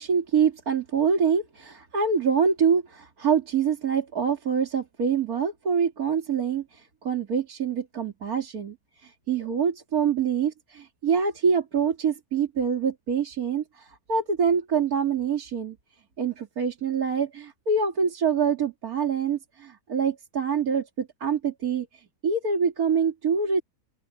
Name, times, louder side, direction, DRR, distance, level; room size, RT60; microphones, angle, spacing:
voice 1, 0.0-15.8 16.2-23.6, right 6 dB, 70° right, 2.8 m, -25 dB
open air
omnidirectional pair, 1.6 m